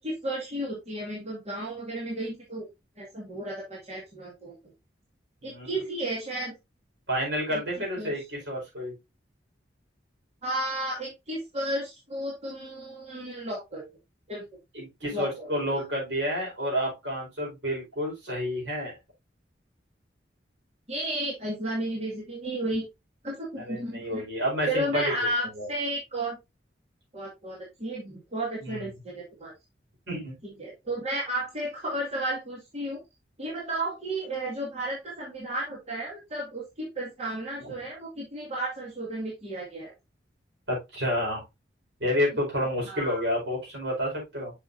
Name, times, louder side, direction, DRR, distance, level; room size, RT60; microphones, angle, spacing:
voice 1, 0.0-2.7 3.0-4.5 5.4-6.5 7.5-8.2 10.4-13.8 14.3-14.5 15.1-15.5 20.9-22.9 23.2-24.2 24.7-26.4 27.1-29.5 30.6-33.0 33.4-39.9 42.9-43.2, right 1 dB, 35° right, -4 dB, 2.1 m, -33 dB
voice 2, 7.1-8.9 14.7-18.9 23.6-25.3 25.5-25.7 28.6-28.9 30.1-30.4 40.7-41.4 42.0-44.5, equal, 70° right, -2 dB, 4.8 m, -30 dB
7.0 x 6.3 x 2.6 m, 0.22 s
head